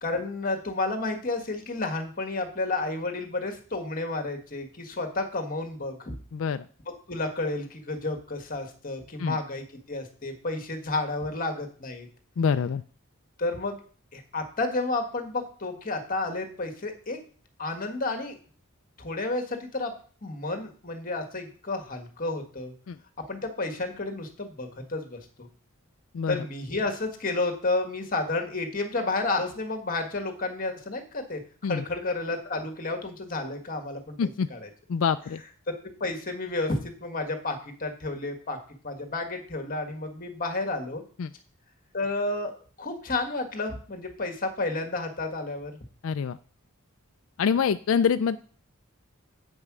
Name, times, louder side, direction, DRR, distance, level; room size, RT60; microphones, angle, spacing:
voice 1, 0.0-6.1 7.1-12.1 13.4-13.8 14.1-17.2 17.6-18.4 19.0-19.9 20.2-22.7 23.2-25.2 26.3-34.7 35.8-38.6 38.8-41.0 41.9-45.7, left 2 dB, 40° left, 5 dB, 1.6 m, -31 dB
voice 2, 6.3-6.7 9.2-9.4 12.4-12.8 22.9-23.0 26.1-26.4 31.6-31.8 34.2-34.5 34.9-35.4 41.2-41.3 46.0-46.4 47.4-48.4, left 6 dB, 60° left, 11 dB, 0.4 m, -25 dB
8.3 x 5.4 x 6.0 m, 0.42 s
head